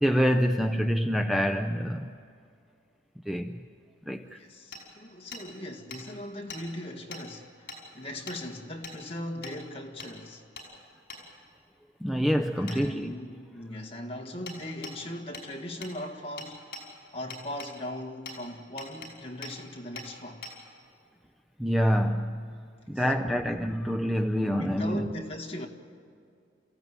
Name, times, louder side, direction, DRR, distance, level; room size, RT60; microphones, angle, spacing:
voice 1, 0.0-2.1 3.2-3.6 4.0-4.4 12.0-13.2 21.6-22.6 22.9-25.1, equal, ahead, 0.5 m, -26 dB
voice 2, 4.3-10.4 12.5-16.7 17.1-20.5 22.9-23.4 24.4-25.7, left 1 dB, 30° left, 1.8 m, -39 dB
Hammer, 4.7-4.8 5.3-5.4 5.9-6.0 6.5-6.6 7.1-7.2 7.7-7.8 8.3-8.4 8.8-9.0 9.4-9.6 10.0-10.1 10.6-10.7 11.1-11.2 12.7-12.8 14.5-14.6 14.8-15.0 15.3-15.5 15.8-15.9 16.4-16.8 17.3-17.7 18.3-18.4 18.8-19.1 19.4-19.5 20.0-20.1 20.4-20.5, left 3 dB, 50° left, 5.7 m, -41 dB
28.5 x 15.5 x 9.3 m
head